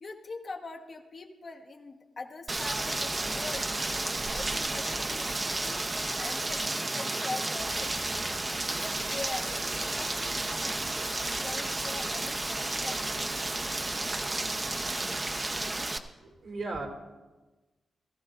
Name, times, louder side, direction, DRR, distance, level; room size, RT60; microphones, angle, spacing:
voice 1, 0.0-3.7 4.2-8.0 8.6-13.9, left 3 dB, 55° left, 2 dB, 1.3 m, -43 dB
Rain, 2.5-16.0, right 2 dB, 30° right, 0.8 m, -32 dB
voice 2, 16.0-16.9, right 3 dB, 70° right, 1 dB, 2.3 m, -37 dB
19.0 x 14.0 x 2.5 m, 1.2 s
supercardioid pair, 45°, 0 cm